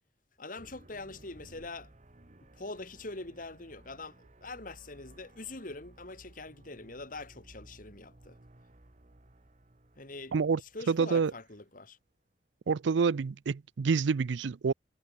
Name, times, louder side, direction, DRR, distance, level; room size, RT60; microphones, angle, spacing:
voice 1, 0.4-1.9 2.5-8.4 10.0-12.0, left 2 dB, 45° left, 2.7 m, -44 dB
sound 1, 0.6-11.8, right 1 dB, 40° right, 1.4 m, -58 dB
voice 2, 10.9-11.3 12.7-14.7, right 5 dB, 75° right, 0.4 m, -27 dB
head